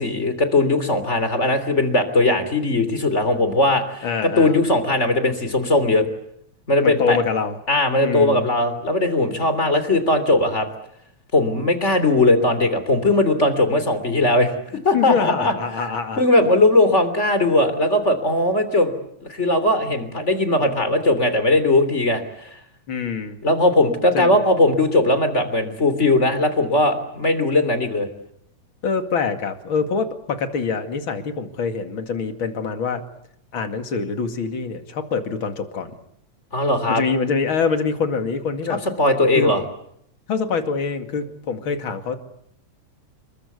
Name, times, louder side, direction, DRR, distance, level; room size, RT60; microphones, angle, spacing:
voice 1, 0.0-6.1 6.7-7.2 7.7-10.7 11.3-14.5 14.8-15.5 16.2-19.0 19.3-22.5 23.4-28.1 36.5-37.0 39.0-39.6, left 2 dB, 25° left, 9 dB, 3.3 m, -19 dB
voice 2, 4.0-4.6 6.8-7.6 8.0-8.5 14.9-16.2 22.9-23.4 24.1-24.4 28.8-33.0 33.5-35.9 36.9-38.8 39.3-39.5 40.3-42.2, left 5 dB, 45° left, 6 dB, 2.7 m, -25 dB
28.0 x 22.5 x 8.2 m, 0.72 s
omnidirectional pair, 3.3 m